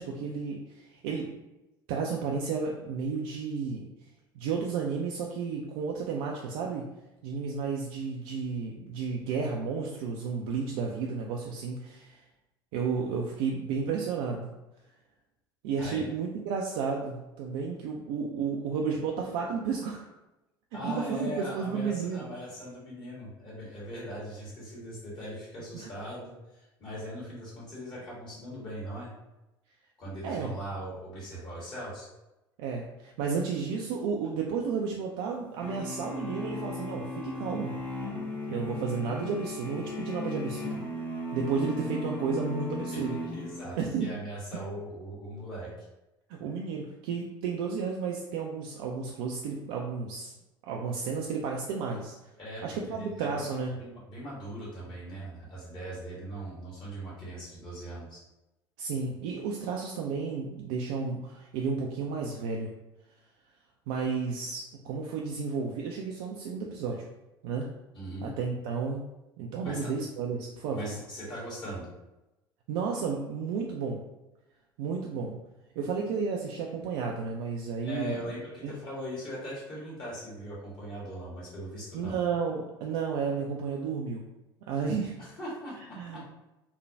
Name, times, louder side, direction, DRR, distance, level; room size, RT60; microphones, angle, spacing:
voice 1, 0.0-1.3 1.9-3.8 4.4-6.9 7.2-12.2 12.7-14.5 15.6-20.1 20.8-22.3 25.7-25.9 30.2-30.5 32.6-37.7 38.5-40.8 41.3-43.2 43.8-44.1 46.3-50.3 50.7-52.1 52.6-53.8 58.8-62.7 63.9-67.0 67.4-67.7 68.2-69.1 69.4-71.0 72.7-74.0 74.8-75.4 75.8-78.2 78.6-78.7 81.9-84.2 84.7-85.1 86.0-86.3, right 5 dB, 55° right, -1 dB, 0.3 m, -32 dB
voice 2, 20.7-29.1 30.0-32.1 42.9-43.0 43.3-45.9 52.4-58.2 67.9-68.3 69.6-69.9 70.7-71.9 77.8-82.2 85.2-86.2, equal, 35° left, -7 dB, 1.4 m, -40 dB
sound 1, 35.6-43.9, left 1 dB, 10° left, 0.7 m, -36 dB
3.1 x 2.2 x 2.6 m, 0.98 s
figure-of-eight pair, 65°, 13 cm